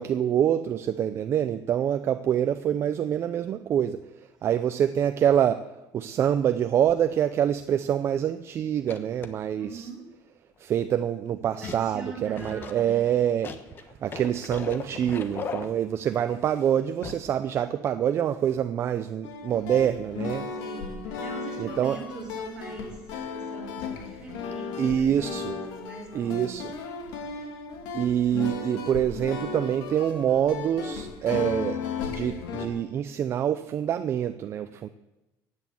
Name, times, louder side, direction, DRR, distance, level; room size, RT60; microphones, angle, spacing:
voice 1, 0.0-4.0 4.4-5.7 5.9-9.9 10.6-13.5 14.0-20.5 21.6-22.0 24.8-25.6 26.1-26.7 27.9-31.8 32.1-34.9, right 9 dB, 35° right, 10 dB, 0.6 m, -26 dB
sound 1, 6.9-7.1 7.8-7.9 8.8-9.5 11.6-12.0 12.4-16.2 17.0-17.4 17.6-17.7, left 5 dB, 30° left, 1.2 m, -38 dB
voice 2, 9.6-10.1 11.6-13.0 20.5-27.1, right 3 dB, 10° right, -3 dB, 4.1 m, -42 dB
sound 2, 19.2-32.7, left 5 dB, 80° left, 2.7 m, -35 dB
15.5 x 9.6 x 7.8 m, 1.0 s
cardioid pair, 160°, 7 cm